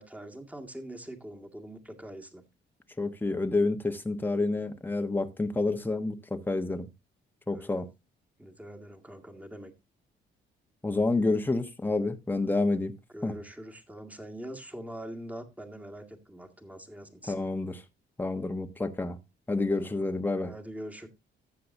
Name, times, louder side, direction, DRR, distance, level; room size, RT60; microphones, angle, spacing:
voice 1, 0.0-2.4 7.5-7.9 8.4-9.7 13.1-17.4 19.8-20.1 20.4-21.1, right 1 dB, 5° right, 1.9 m, -43 dB
voice 2, 3.0-6.9 7.5-7.9 10.8-12.9 13.2-13.3 17.3-17.8 18.2-19.2 19.5-20.5, left 2 dB, 10° left, 1.1 m, -29 dB
13.5 x 7.7 x 2.7 m
cardioid pair, 90°, 20 cm